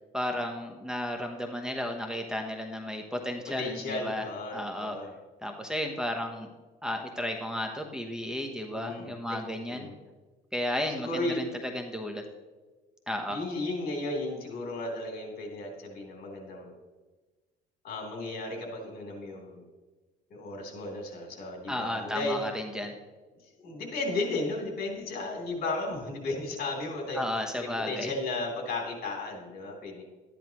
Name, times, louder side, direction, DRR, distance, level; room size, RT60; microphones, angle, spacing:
voice 1, 0.1-5.0 5.4-6.5 6.8-9.9 10.5-12.2 13.1-13.4 21.7-22.9 27.1-28.1, left 1 dB, 5° right, 1 dB, 1.0 m, -33 dB
voice 2, 3.6-5.1 8.7-9.4 9.7-9.9 10.9-11.4 13.3-16.7 17.8-19.6 20.3-22.4 23.4-27.2 27.6-30.0, left 2 dB, 60° left, 0 dB, 3.4 m, -34 dB
12.5 x 10.5 x 3.0 m, 1.3 s
cardioid pair, 110°, 17 cm